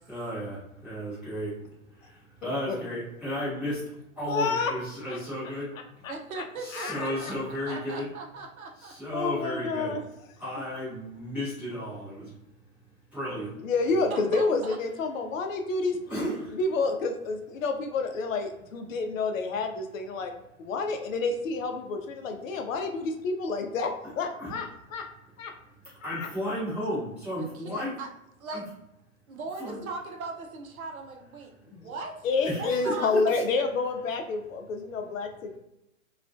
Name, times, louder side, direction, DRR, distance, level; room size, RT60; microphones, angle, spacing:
voice 1, 0.1-1.5 2.4-3.8 4.2-5.7 6.6-8.1 8.8-10.0 10.4-12.3 13.1-13.5 13.9-14.2 16.1-16.5 24.4-24.5 26.0-27.9 28.5-28.6 29.6-29.9 32.4-33.4, equal, 5° right, -12 dB, 0.5 m, -33 dB
voice 2, 2.4-2.8 4.3-4.7 5.1-5.2 6.0-6.4 6.7-7.3 9.1-10.0 13.6-16.0 16.5-20.3 20.6-25.1 25.4-25.5 26.0-26.3 31.7-31.9 32.2-35.6, left 3 dB, 70° left, 6 dB, 0.6 m, -29 dB
voice 3, 6.1-8.9 14.1-14.8 27.4-28.1 28.4-28.6 29.3-32.3 32.6-33.1, right 3 dB, 90° right, 2 dB, 0.7 m, -39 dB
2.3 x 2.1 x 2.5 m, 0.88 s
hypercardioid pair, 135°, 41 cm